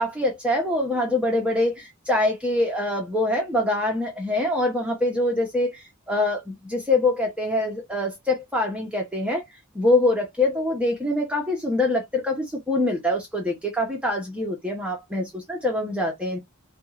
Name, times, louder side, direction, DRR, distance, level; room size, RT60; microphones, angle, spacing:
voice 1, 0.0-9.4 9.7-16.4, left 1 dB, 5° right, 0.8 m, -24 dB
4.3 x 2.4 x 3.0 m
head